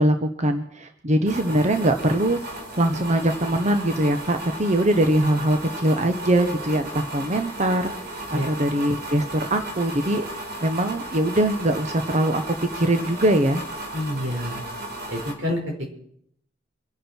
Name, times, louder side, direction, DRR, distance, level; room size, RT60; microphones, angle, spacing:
voice 1, 0.0-10.2 10.6-13.6, right 1 dB, 35° right, 7 dB, 1.0 m, -22 dB
sound 1, 1.3-15.3, right 1 dB, 55° right, 3.9 m, -35 dB
voice 2, 13.9-14.6 15.1-15.9, left 1 dB, 80° right, 1 dB, 5.3 m, -28 dB
26.5 x 11.0 x 4.4 m, 0.70 s
head